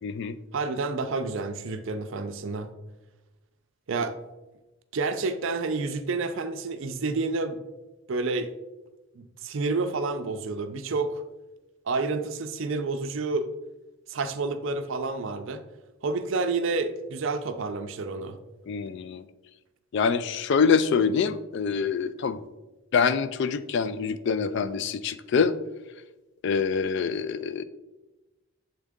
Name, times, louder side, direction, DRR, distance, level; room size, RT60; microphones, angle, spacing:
voice 1, 0.0-0.3 18.7-19.2 19.9-22.4 22.9-25.5 26.4-27.6, left 5 dB, 55° left, 13 dB, 0.3 m, -25 dB
voice 2, 0.5-2.7 3.9-4.2 4.9-7.6 8.1-8.5 9.2-11.2 11.9-13.5 14.1-15.6 16.0-18.4, right 3 dB, 60° right, 9 dB, 0.5 m, -29 dB
7.3 x 3.7 x 3.5 m, 1.1 s
head